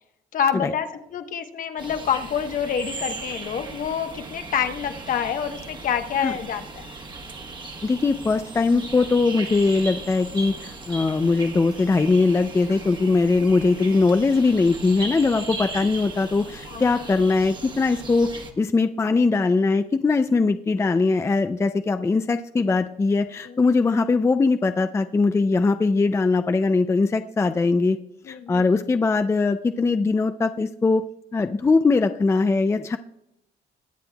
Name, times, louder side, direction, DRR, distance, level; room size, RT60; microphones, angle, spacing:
voice 1, 0.3-6.9 16.7-17.0 23.4-23.7 28.2-28.7, left 8 dB, 55° left, 7 dB, 1.1 m, -27 dB
sound 1, 1.8-18.5, right 3 dB, 25° right, 1.3 m, -37 dB
voice 2, 7.8-18.3 18.6-28.0 28.3-31.0 31.3-33.0, left 3 dB, 15° left, 9 dB, 0.4 m, -21 dB
22.0 x 7.9 x 2.3 m, 0.81 s
cardioid pair, 110°, 17 cm